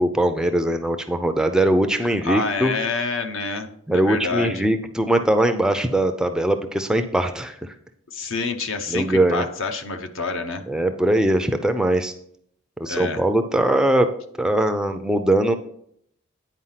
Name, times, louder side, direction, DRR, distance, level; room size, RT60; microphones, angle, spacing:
voice 1, 0.0-2.7 3.9-7.7 8.9-9.5 10.7-12.1 12.8-14.1 14.4-15.5, right 1 dB, 5° right, 7 dB, 0.4 m, -21 dB
voice 2, 2.0-3.7 3.9-4.7 8.1-10.6 12.9-13.2, left 3 dB, 65° left, 7 dB, 0.9 m, -27 dB
9.8 x 4.7 x 5.7 m, 0.67 s
head